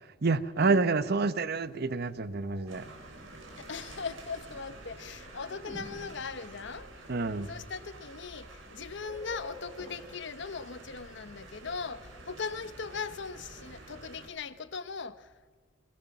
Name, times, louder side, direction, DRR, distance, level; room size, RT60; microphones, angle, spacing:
voice 1, 0.2-2.8 7.1-7.5, right 3 dB, 55° right, 0.8 m, -28 dB
sound 1, 1.9-2.9 5.5-6.6 7.4-7.5 8.5-8.7 9.0-10.7 11.6-12.5, left 1 dB, 15° left, 4.1 m, -49 dB
sound 2, 2.7-14.3, right 2 dB, 75° right, 3.7 m, -49 dB
voice 2, 3.6-6.9 7.5-15.3, left 5 dB, 65° left, 1.0 m, -39 dB
22.0 x 20.0 x 6.0 m
head